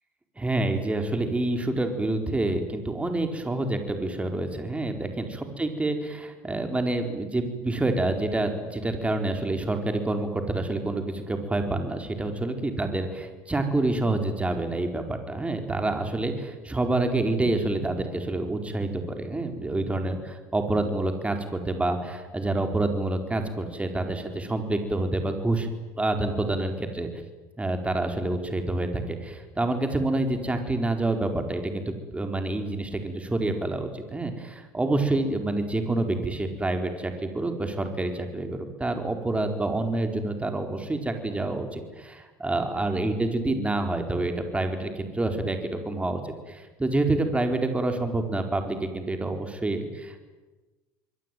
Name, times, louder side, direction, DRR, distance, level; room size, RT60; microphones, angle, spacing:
voice 1, 0.4-25.7 25.9-27.1 27.6-50.2, right 2 dB, 15° right, 5 dB, 4.5 m, -27 dB
27.5 x 22.5 x 9.4 m, 1.2 s
hypercardioid pair, 80°, 9 cm